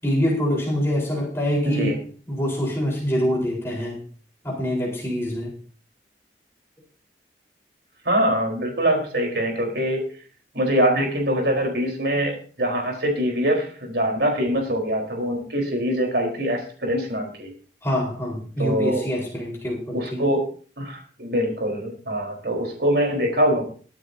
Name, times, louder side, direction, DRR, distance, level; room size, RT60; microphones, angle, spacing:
voice 1, 0.0-2.0 2.3-4.0 4.4-5.6 17.8-20.2, equal, 15° left, -3 dB, 4.5 m, -25 dB
voice 2, 1.6-2.0 8.0-10.0 10.5-17.5 18.6-19.0 19.9-20.4 20.8-23.6, equal, 70° right, 1 dB, 4.4 m, -23 dB
22.0 x 9.1 x 2.8 m, 0.40 s
head